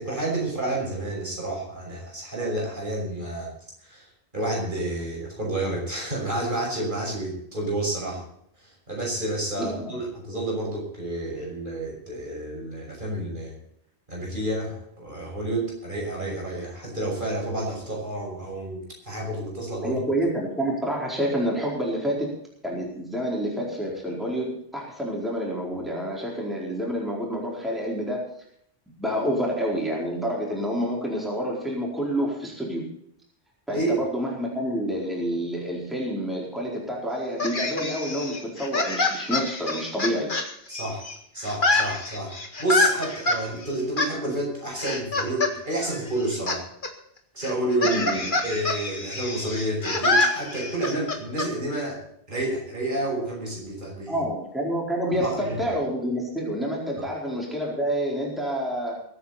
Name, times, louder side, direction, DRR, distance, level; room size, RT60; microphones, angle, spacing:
voice 1, 0.0-3.5 3.8-4.1 4.3-8.2 8.6-13.5 14.1-20.0 33.7-34.0 40.7-41.0 41.3-46.6 47.3-48.0 48.4-52.0 52.3-54.2 55.1-55.6, right 1 dB, 50° right, -1 dB, 6.2 m, -30 dB
voice 2, 9.6-9.9 19.8-22.3 22.6-28.2 29.0-32.8 33.7-40.3 47.8-48.2 54.1-59.0, equal, ahead, -3 dB, 4.5 m, -28 dB
sound 1, 37.4-41.1 41.4-43.4 44.0-44.1 44.8-45.5 45.8-46.6 46.8-46.9 47.4-51.5, left 2 dB, 50° left, 2.0 m, -26 dB
22.0 x 9.5 x 4.2 m, 0.69 s
omnidirectional pair, 1.1 m